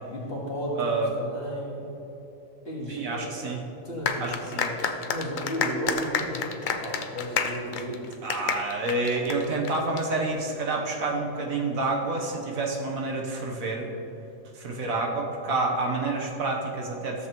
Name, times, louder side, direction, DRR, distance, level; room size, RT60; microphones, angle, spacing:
voice 1, 0.1-1.8 2.7-3.4 3.8-8.1, equal, 45° left, -4 dB, 1.9 m, -34 dB
voice 2, 0.8-1.1 2.9-3.6 4.2-4.7 8.2-13.9 14.5-17.3, right 3 dB, 75° right, 0 dB, 1.4 m, -28 dB
sound 1, 4.1-10.0, left 6 dB, 85° left, 0.4 m, -30 dB
13.5 x 7.1 x 3.0 m, 3.0 s
omnidirectional pair, 1.5 m